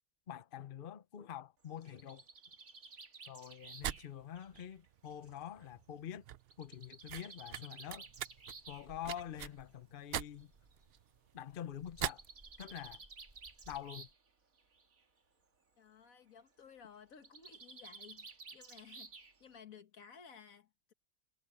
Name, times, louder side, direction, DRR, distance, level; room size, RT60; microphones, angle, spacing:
voice 1, 0.3-2.2 3.3-6.2 6.6-8.1 8.7-10.5 11.3-12.2 12.6-13.0 13.7-14.1, left 10 dB, 45° left, 0.9 m, -46 dB
Bird, 1.6-5.4 6.5-8.9 9.9-10.0 10.4-10.5 10.7-10.8 11.9-14.3 14.6-15.0 17.1-19.6, right 4 dB, 80° right, 2.6 m, -54 dB
sound 1, 3.6-12.3, right 11 dB, 65° right, 0.6 m, -44 dB
sound 2, 8.0-14.1, right 2 dB, 25° right, 2.2 m, -64 dB
voice 2, 15.8-20.9, left 7 dB, 80° left, 1.8 m, -57 dB
omnidirectional pair, 1.4 m